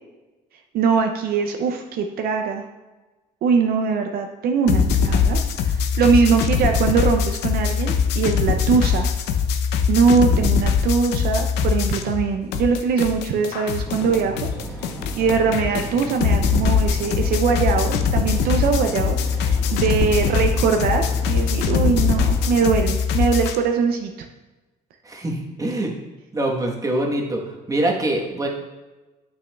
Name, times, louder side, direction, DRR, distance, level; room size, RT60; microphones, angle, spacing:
voice 1, 0.7-2.6 3.4-9.1 9.9-14.5 15.2-24.1, right 5 dB, 65° right, 5 dB, 0.5 m, -21 dB
sound 1, 4.7-12.3 12.5-23.6, left 6 dB, 90° left, 0.6 m, -22 dB
sound 2, 13.8-22.9, equal, 15° left, 1.9 m, -35 dB
voice 2, 25.0-25.9 26.3-28.5, right 1 dB, 20° right, 0 dB, 1.2 m, -24 dB
8.3 x 6.0 x 2.3 m, 1.2 s
cardioid pair, 110°, 17 cm